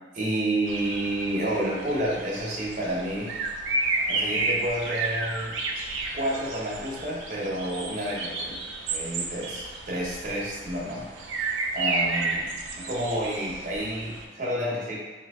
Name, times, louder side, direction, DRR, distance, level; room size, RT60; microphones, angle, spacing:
voice 1, 0.1-3.3 4.1-5.5 6.1-8.6 8.9-12.4 12.8-14.9, right 1 dB, 40° right, -5 dB, 0.7 m, -30 dB
sound 1, 0.7-14.2, right 3 dB, 80° right, 0.4 m, -32 dB
2.7 x 2.6 x 3.5 m, 1.3 s
head